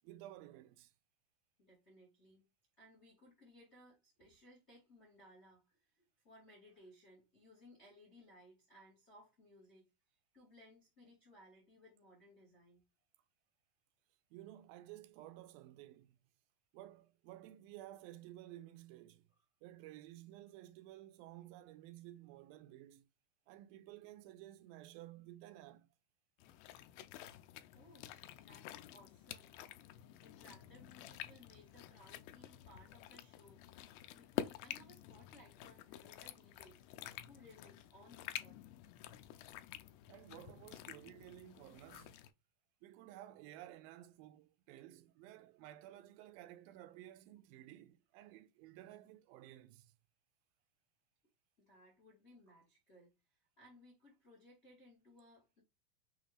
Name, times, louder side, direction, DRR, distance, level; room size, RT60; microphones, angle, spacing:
voice 1, 0.0-0.9 14.3-16.2 16.7-19.3 19.6-23.1 23.5-25.9 39.3-39.4 40.1-42.2 42.8-49.9, right 14 dB, 85° right, 2.2 m, -54 dB
voice 2, 1.6-2.4 2.8-12.8 19.3-19.4 27.7-28.1 28.4-29.5 30.2-33.6 34.1-38.6 51.6-53.1 53.6-55.6, left 1 dB, 70° left, 0.6 m, -62 dB
sound 1, 26.4-42.3, left 12 dB, 85° left, 2.4 m, -49 dB
6.2 x 2.4 x 3.3 m
omnidirectional pair, 4.2 m